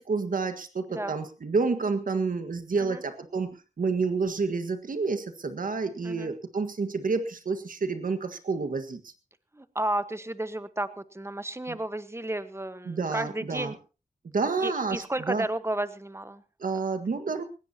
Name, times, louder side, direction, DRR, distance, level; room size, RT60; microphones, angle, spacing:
voice 1, 0.0-3.5 3.8-9.1 11.7-11.8 12.8-13.8 14.3-15.5 16.6-17.4, right 4 dB, 85° right, 8 dB, 1.7 m, -29 dB
voice 2, 9.5-13.8 14.6-16.4, right 1 dB, 20° right, 12 dB, 1.3 m, -32 dB
20.0 x 16.5 x 2.9 m, 0.33 s
cardioid pair, 50°, 14 cm